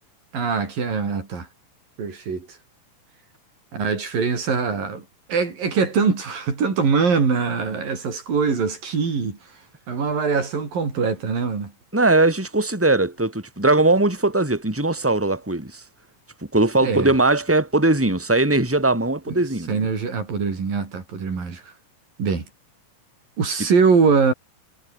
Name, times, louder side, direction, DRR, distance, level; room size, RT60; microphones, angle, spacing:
voice 1, 0.3-1.5 2.0-2.5 3.7-9.4 9.9-11.7 16.8-17.1 19.3-21.7 22.2-22.4 23.4-24.3, right 5 dB, 75° right, 6.8 m, -23 dB
voice 2, 11.9-15.8 16.5-19.7, right 2 dB, 5° right, 4.6 m, -20 dB
omnidirectional pair, 4.0 m